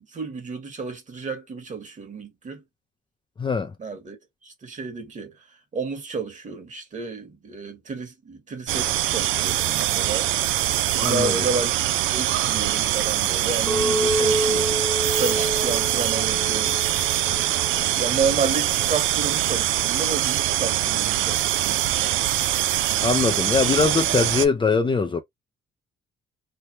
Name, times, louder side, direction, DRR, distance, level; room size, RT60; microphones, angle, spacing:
voice 1, 0.0-2.6 3.8-4.2 4.4-5.4 5.7-10.3 11.0-14.8 15.1-16.8 17.9-22.2, right 4 dB, 40° right, 1.4 m, -31 dB
voice 2, 3.4-3.7 10.9-11.5 17.7-17.9 23.0-25.2, left 5 dB, 25° left, 0.5 m, -22 dB
sound 1, 8.7-24.5, right 13 dB, 85° right, 0.4 m, -23 dB
Chink clink, 13.7-17.9, equal, 5° left, 0.9 m, -28 dB
3.3 x 2.1 x 2.7 m
cardioid pair, 90°, 20 cm